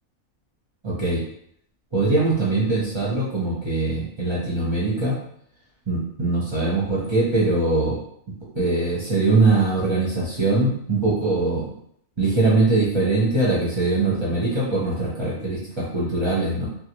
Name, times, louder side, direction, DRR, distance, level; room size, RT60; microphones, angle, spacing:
voice 1, 0.8-1.2 1.9-5.2 5.9-8.0 8.5-11.7 12.2-16.7, right 3 dB, 25° right, -8 dB, 0.6 m, -22 dB
2.5 x 2.1 x 2.9 m, 0.68 s
omnidirectional pair, 1.5 m